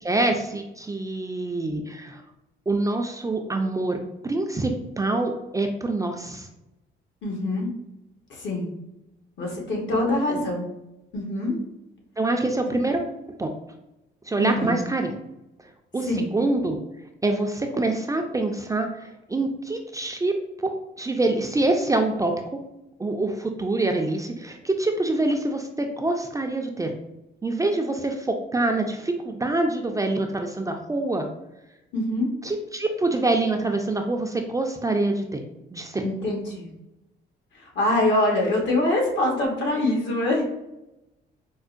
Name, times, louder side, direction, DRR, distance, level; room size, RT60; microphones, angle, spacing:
voice 1, 0.0-2.2 2.7-6.5 10.0-10.4 12.2-13.0 13.4-13.5 14.3-15.2 15.9-16.8 17.2-20.7 21.0-22.6 23.0-26.9 27.4-31.3 32.4-35.4 35.7-36.0, right 2 dB, 15° right, 4 dB, 0.3 m, -25 dB
voice 2, 7.2-7.7 8.3-8.7 9.4-10.7 11.1-11.5 12.7-12.8 14.4-14.8 16.1-16.3 31.9-32.3 36.0-36.7 37.5-40.4, left 1 dB, 70° left, 0 dB, 1.1 m, -24 dB
4.5 x 2.1 x 2.5 m, 0.92 s
cardioid pair, 90°, 20 cm